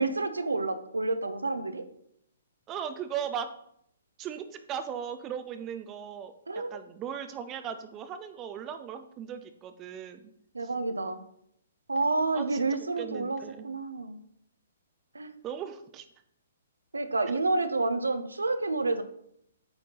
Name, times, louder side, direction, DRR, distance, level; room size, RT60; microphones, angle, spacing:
voice 1, 0.0-1.8 6.5-6.8 10.5-11.2 11.9-14.2 15.1-15.3 16.9-19.0, right 3 dB, 70° right, 10 dB, 0.7 m, -29 dB
voice 2, 2.7-3.5 4.2-10.3 10.6-10.7 12.3-12.7 13.0-13.7 15.4-16.1 17.3-17.4, right 8 dB, 20° right, 9 dB, 0.5 m, -38 dB
8.7 x 4.4 x 4.1 m, 0.72 s
figure-of-eight pair, 125°, 0 cm